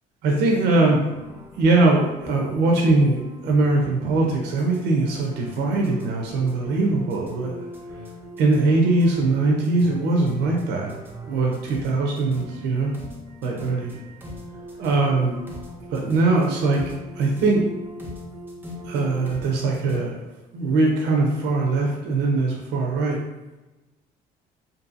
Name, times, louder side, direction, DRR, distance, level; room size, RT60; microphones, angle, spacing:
voice 1, 0.2-1.1 1.6-7.7 8.4-12.9 13.4-14.0 14.8-15.4 15.9-16.8 17.2-17.7 18.9-20.2 20.5-23.2, right 3 dB, 85° right, 0 dB, 0.5 m, -21 dB
sound 1, 1.1-20.0, left 1 dB, 10° right, 0.5 m, -40 dB
2.6 x 2.6 x 2.5 m, 1.1 s
cardioid pair, 110°, 17 cm